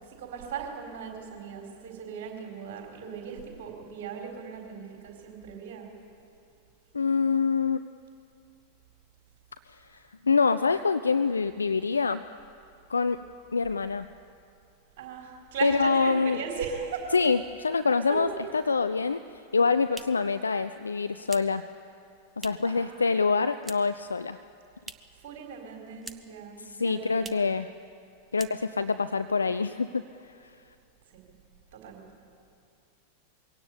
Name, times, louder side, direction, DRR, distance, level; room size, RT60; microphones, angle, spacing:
voice 1, 0.0-5.9 15.0-17.2 18.3-18.4 22.6-23.3 25.2-27.4 31.1-31.2 31.7-32.1, right 6 dB, 50° right, 1 dB, 4.2 m, -38 dB
voice 2, 6.9-7.8 9.7-12.2 12.9-13.2 13.5-14.1 15.6-16.4 17.1-17.4 17.6-18.3 18.7-19.2 19.5-21.6 22.4-24.4 26.8-27.7 28.3-30.0, left 4 dB, 75° left, 12 dB, 0.4 m, -25 dB
sound 1, 19.9-22.8 23.1-24.1 24.3-25.3 25.5-26.5 26.7-26.8 27.1-27.6 27.9-28.1 28.3-29.0, right 2 dB, 10° right, 0.9 m, -46 dB
22.0 x 17.0 x 8.5 m, 2.5 s
figure-of-eight pair, 90°, 0 cm